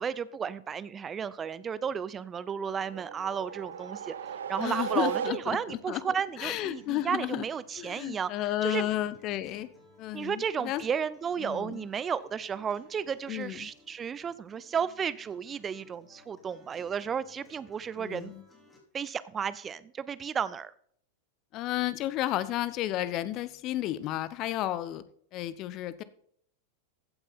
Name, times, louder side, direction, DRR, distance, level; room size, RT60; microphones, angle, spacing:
voice 1, 0.0-8.9 10.1-18.3 18.9-20.7, right 7 dB, 20° right, 17 dB, 0.5 m, -33 dB
sound 1, 2.6-5.9, right 8 dB, 65° right, 0.7 m, -36 dB
sound 2, 2.8-18.8, left 2 dB, 15° left, 5.1 m, -59 dB
voice 2, 4.6-6.0 6.4-7.4 7.8-9.7 10.0-10.8 11.4-11.8 13.3-13.7 18.0-18.4 21.5-25.0 25.3-26.0, left 14 dB, 40° left, 16 dB, 0.9 m, -32 dB
15.0 x 8.9 x 4.2 m, 0.63 s
figure-of-eight pair, 90°, 0 cm